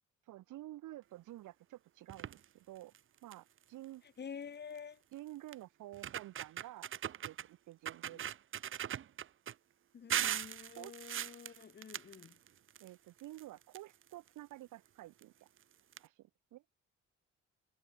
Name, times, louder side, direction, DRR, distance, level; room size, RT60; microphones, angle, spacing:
voice 1, 0.3-2.9 3.2-4.0 5.1-6.9 7.2-8.3 10.2-10.4 10.8-10.9 12.8-15.5 16.0-16.6, right 16 dB, 85° right, 1.6 m, -50 dB
sound 1, 2.1-2.4 2.9-3.0 3.3-3.6 4.8-4.9 5.5-5.6 5.9-7.5 7.8-9.5 10.1-12.9 13.2-14.3 15.2-15.3 15.6-15.7 15.9-16.0, right 10 dB, 45° right, 0.6 m, -39 dB
voice 2, 4.0-5.0 8.0-8.2 9.9-12.4, left 7 dB, 35° left, 0.9 m, -49 dB
cardioid pair, 90°, 30 cm